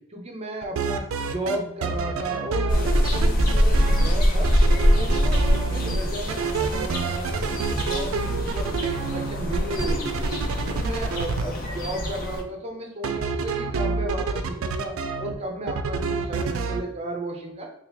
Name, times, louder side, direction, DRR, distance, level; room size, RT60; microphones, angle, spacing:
voice 1, 0.1-10.3 10.6-14.9 15.2-17.7, right 1 dB, 30° right, 1 dB, 0.6 m, -34 dB
sound 1, 0.6-1.6 1.8-4.1 4.4-6.0 6.3-11.4 13.0-15.3 15.7-16.8, right 4 dB, 75° right, 0.4 m, -28 dB
sound 2, 2.7-12.4, equal, 40° left, 0.5 m, -24 dB
3.3 x 2.3 x 3.3 m, 0.82 s
head